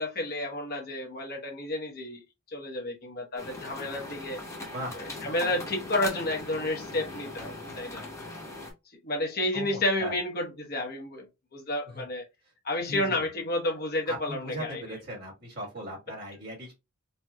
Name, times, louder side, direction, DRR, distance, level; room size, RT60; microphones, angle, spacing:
voice 1, 0.0-2.2 2.5-4.4 5.0-8.0 9.0-11.3 11.5-12.2 12.6-14.8, left 1 dB, 40° left, 0.9 m, -31 dB
sound 1, 3.4-8.7, left 2 dB, 15° left, 0.6 m, -40 dB
voice 2, 9.5-10.2 11.9-12.0 12.9-13.2 14.0-16.7, equal, 45° right, 1.6 m, -38 dB
4.2 x 2.2 x 2.2 m
head